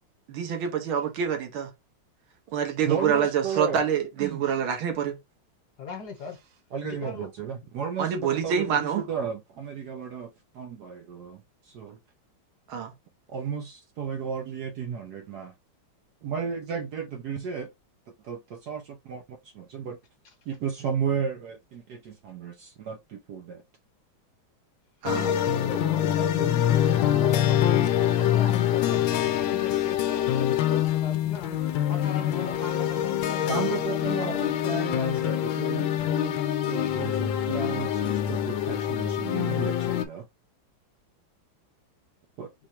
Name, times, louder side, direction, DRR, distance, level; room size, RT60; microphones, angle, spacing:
voice 1, 0.3-1.7 2.5-5.2 8.0-9.0 12.7-12.9 25.0-25.3, right 8 dB, 85° right, 1.8 m, -26 dB
voice 2, 2.8-3.8 4.2-4.5 6.7-12.0 13.3-15.5 16.2-17.7 18.1-19.2 19.5-20.0 20.5-23.6 33.5-40.3 42.4-42.5, right 6 dB, 70° right, 1.0 m, -34 dB
voice 3, 5.8-6.4 6.8-7.3 25.2-31.6 31.9-33.8 34.9-35.0, left 4 dB, 55° left, 1.7 m, -39 dB
sound 1, 25.0-40.0, left 11 dB, 75° left, 1.4 m, -25 dB
4.8 x 2.2 x 4.2 m
omnidirectional pair, 2.2 m